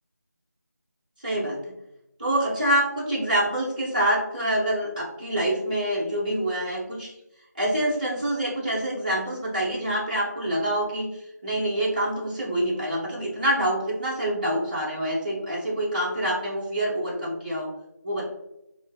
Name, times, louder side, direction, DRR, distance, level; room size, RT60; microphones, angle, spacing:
voice 1, 1.2-1.6 2.2-7.1 7.6-11.1 11.4-17.7 18.0-18.3, right 1 dB, 30° right, -6 dB, 0.6 m, -26 dB
3.0 x 2.4 x 2.2 m, 0.86 s
figure-of-eight pair, 165°, 10 cm